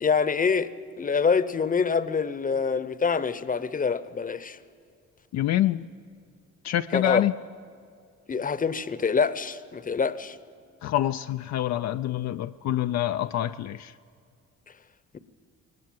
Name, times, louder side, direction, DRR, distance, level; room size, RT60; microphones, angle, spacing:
voice 1, 0.0-0.7 1.0-4.6 6.9-7.3 8.3-10.4, left 5 dB, 30° left, 0.9 m, -25 dB
voice 2, 5.3-5.9 6.6-7.3 10.8-13.9, left 13 dB, 65° left, 0.5 m, -26 dB
20.0 x 19.0 x 7.7 m
cardioid pair, 90°, 30 cm